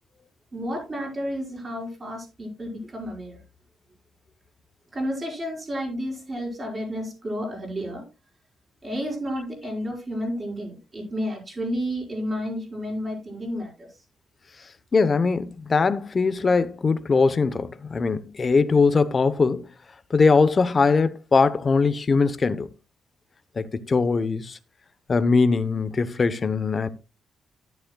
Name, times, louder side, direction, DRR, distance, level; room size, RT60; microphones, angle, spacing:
voice 1, 0.5-3.4 4.9-8.0 8.8-13.9, equal, 25° right, 4.8 m, -31 dB
voice 2, 14.9-19.7 20.1-22.7 23.6-24.6 25.1-26.9, left 4 dB, 30° left, 0.8 m, -21 dB
11.5 x 10.5 x 2.2 m
cardioid pair, 130°, 0 cm